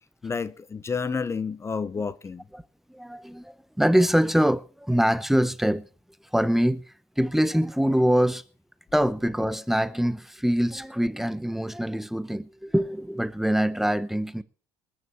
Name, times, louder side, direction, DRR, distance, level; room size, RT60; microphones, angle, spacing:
voice 1, 0.2-2.4, left 5 dB, 25° left, 0.7 m, -30 dB
voice 2, 2.9-5.9 6.3-8.4 8.9-14.4, equal, 5° right, 0.8 m, -24 dB
20.0 x 9.7 x 4.5 m
hypercardioid pair, 70°, 10 cm